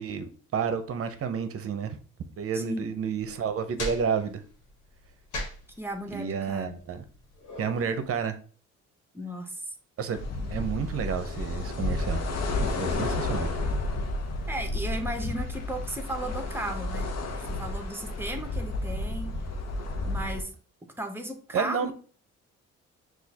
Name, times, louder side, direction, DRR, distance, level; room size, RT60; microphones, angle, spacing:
voice 1, 0.0-2.0 2.4-4.4 6.1-7.0 7.6-8.4 10.0-10.2 10.5-12.2 12.6-13.5 21.5-21.9, right 6 dB, 50° right, 9 dB, 0.7 m, -30 dB
voice 2, 2.5-2.9 5.8-6.8 9.1-9.7 14.5-17.1 17.4-19.3 20.1-20.5 21.0-21.9, right 1 dB, 5° right, 5 dB, 0.8 m, -35 dB
sound 1, 3.2-8.2, left 1 dB, 80° left, 1.3 m, -40 dB
sound 2, 10.1-20.4, left 2 dB, 60° left, 0.8 m, -31 dB
6.1 x 2.5 x 2.8 m, 0.41 s
cardioid pair, 90°, 30 cm